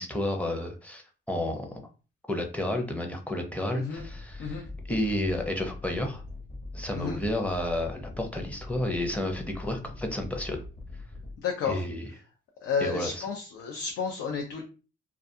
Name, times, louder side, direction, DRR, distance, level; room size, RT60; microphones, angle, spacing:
voice 1, 0.0-1.8 2.3-6.2 6.7-10.6 11.7-12.1 12.8-13.2, left 1 dB, 5° left, 3 dB, 0.6 m, -31 dB
voice 2, 3.7-4.1 4.4-4.6 6.9-7.2 11.4-11.8 12.6-14.6, left 5 dB, 75° left, 1 dB, 0.5 m, -31 dB
sound 1, 4.0-11.3, left 2 dB, 30° left, 0.9 m, -42 dB
2.4 x 2.3 x 2.6 m, 0.34 s
cardioid pair, 90°, 20 cm